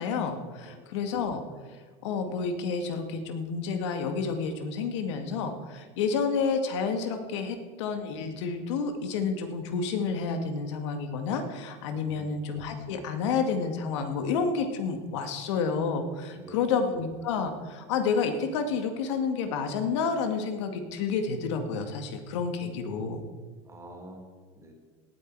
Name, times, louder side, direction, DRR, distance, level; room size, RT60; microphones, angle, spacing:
voice 1, 0.0-1.4 2.0-23.2, left 5 dB, 75° left, 6 dB, 2.1 m, -30 dB
voice 2, 11.9-12.3 16.3-16.7 23.6-24.7, equal, 20° right, 3 dB, 3.2 m, -47 dB
17.5 x 9.3 x 4.8 m, 1.4 s
supercardioid pair, 105°, 15 cm